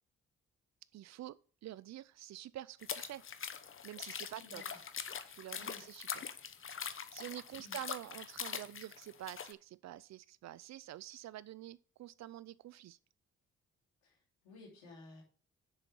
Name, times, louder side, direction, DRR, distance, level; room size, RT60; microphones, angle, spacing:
voice 1, 0.9-3.2 3.8-4.8 5.3-6.2 7.1-13.0, right 13 dB, 55° right, 0.5 m, -48 dB
sound 1, 2.8-9.5, left 7 dB, 40° left, 0.9 m, -43 dB
voice 2, 4.4-4.7 5.6-5.8 7.6-7.8 14.0-14.2 14.4-15.2, left 3 dB, 90° left, 3.1 m, -55 dB
6.7 x 5.5 x 6.2 m
hypercardioid pair, 50°, 32 cm